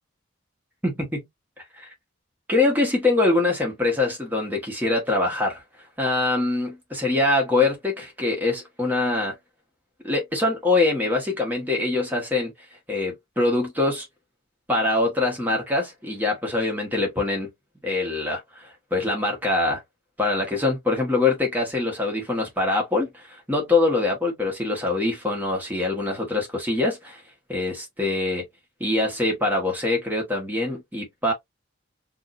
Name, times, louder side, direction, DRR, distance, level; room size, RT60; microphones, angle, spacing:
voice 1, 0.8-1.3 1.8-1.9 2.5-5.6 6.0-9.3 10.0-12.5 12.9-14.1 14.7-17.5 17.8-19.8 20.2-27.2 27.5-28.4 28.8-31.3, left 2 dB, 10° right, 1.4 m, -24 dB
4.6 x 2.7 x 2.6 m
head